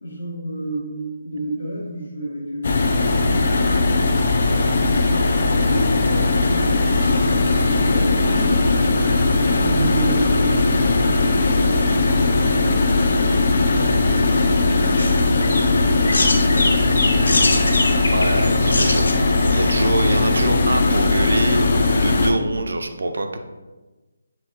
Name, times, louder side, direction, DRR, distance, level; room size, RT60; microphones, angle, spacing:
voice 1, 0.0-8.7 9.6-13.9, right 1 dB, 65° left, -8 dB, 1.2 m, -32 dB
sound 1, 2.6-22.3, left 3 dB, 40° left, 0.4 m, -18 dB
sound 2, 14.2-20.2, left 2 dB, 80° left, 0.6 m, -25 dB
voice 2, 18.1-23.4, right 2 dB, 85° right, 7 dB, 0.4 m, -25 dB
4.3 x 2.1 x 4.0 m, 1.2 s
hypercardioid pair, 175°, 0 cm